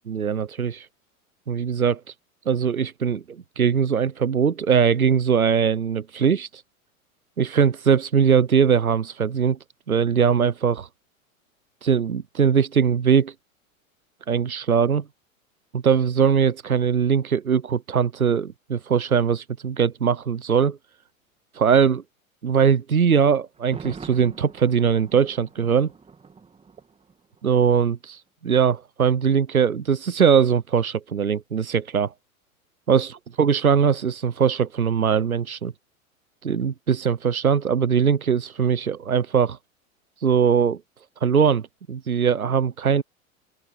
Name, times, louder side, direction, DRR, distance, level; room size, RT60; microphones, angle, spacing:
voice 1, 0.1-0.9 1.5-2.0 2.5-6.6 7.4-9.6 9.9-10.9 11.8-13.3 14.3-15.0 15.7-20.8 21.5-22.0 22.4-25.9 27.4-32.1 32.9-33.1 33.4-35.7 36.4-39.6 40.2-40.8 41.2-43.0, right 7 dB, 80° right, 1.0 m, -21 dB
Thunder, 23.5-27.5 27.7-27.8, right 5 dB, 15° right, 2.7 m, -44 dB
open air
figure-of-eight pair, 85°, 42 cm